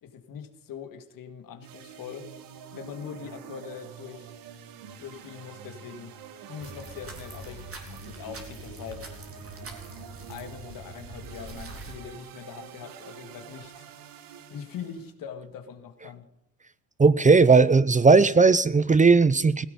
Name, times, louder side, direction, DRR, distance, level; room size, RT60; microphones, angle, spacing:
voice 1, 0.0-2.3 2.7-4.3 5.0-6.1 6.5-9.1 10.3-13.9 14.5-16.3, left 7 dB, 75° left, 8 dB, 1.9 m, -42 dB
sound 1, 1.6-15.1, right 7 dB, 85° right, 1.5 m, -46 dB
sound 2, 6.6-11.9, right 2 dB, 40° right, 3.7 m, -43 dB
voice 2, 17.0-19.6, right 4 dB, 20° right, 17 dB, 0.7 m, -17 dB
16.5 x 16.5 x 5.3 m, 0.80 s
supercardioid pair, 70°, 34 cm